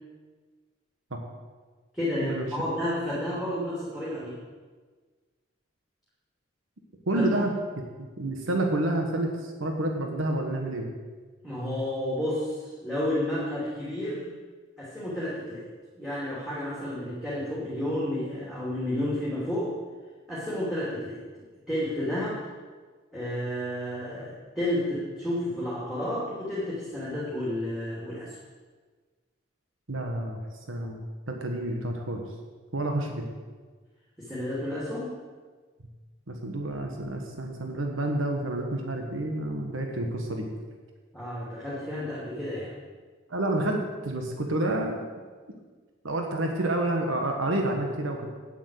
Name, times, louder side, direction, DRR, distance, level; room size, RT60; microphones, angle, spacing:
voice 1, 1.9-4.4 7.1-7.4 11.4-14.2 14.8-15.6 15.9-19.7 20.3-21.2 21.7-22.4 23.1-28.4 34.2-35.1 41.1-42.7, left 1 dB, ahead, -8 dB, 2.8 m, -31 dB
voice 2, 7.1-7.5 8.0-10.9 29.9-30.4 30.7-32.2 32.7-33.2 36.3-40.4 43.3-45.1 46.0-48.3, right 1 dB, 85° right, 2 dB, 1.5 m, -29 dB
9.3 x 8.2 x 8.2 m, 1.4 s
head